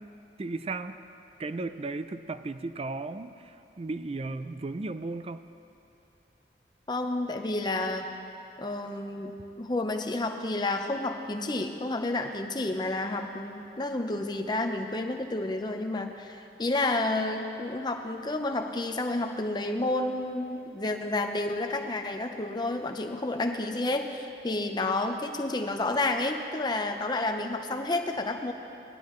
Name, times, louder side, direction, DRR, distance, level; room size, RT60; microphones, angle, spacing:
voice 1, 0.4-1.0 1.4-5.4, right 3 dB, 35° right, 11 dB, 0.4 m, -35 dB
voice 2, 6.9-8.1 8.6-9.3 9.6-28.5, left 2 dB, 25° left, 4 dB, 0.7 m, -30 dB
19.0 x 11.5 x 3.1 m, 2.9 s
head